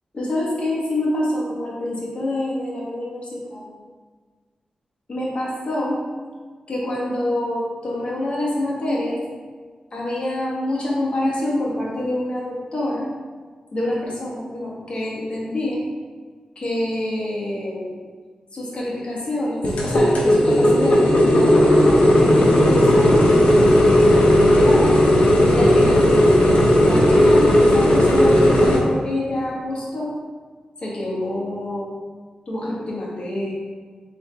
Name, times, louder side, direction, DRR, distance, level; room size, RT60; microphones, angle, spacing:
voice 1, 0.1-3.7 5.1-6.0 6.7-9.2 9.9-13.1 13.7-15.8 16.6-18.0 18.5-22.1 22.4-25.0 25.5-26.3 26.7-30.1 30.8-31.9 32.5-33.5, left 1 dB, 50° left, -5 dB, 1.4 m, -26 dB
sound 1, 19.6-28.8, left 1 dB, 70° left, 1.0 m, -15 dB
4.1 x 3.5 x 3.2 m, 1.5 s
cardioid pair, 80°, 2 cm